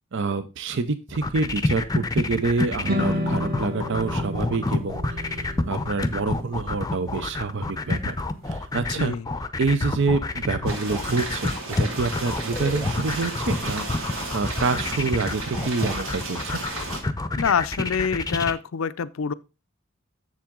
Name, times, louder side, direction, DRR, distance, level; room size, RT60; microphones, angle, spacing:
voice 1, 0.1-8.1 8.5-9.1 9.6-16.6, right 4 dB, 65° right, 0.6 m, -27 dB
sound 1, 1.1-18.5, left 2 dB, 20° left, 0.6 m, -28 dB
sound 2, 2.8-9.1, left 1 dB, 45° right, 1.3 m, -32 dB
voice 2, 8.8-9.3 17.4-19.3, left 6 dB, 90° left, 0.5 m, -26 dB
sound 3, 10.7-17.0, right 2 dB, 85° right, 2.6 m, -33 dB
7.3 x 7.2 x 3.7 m
head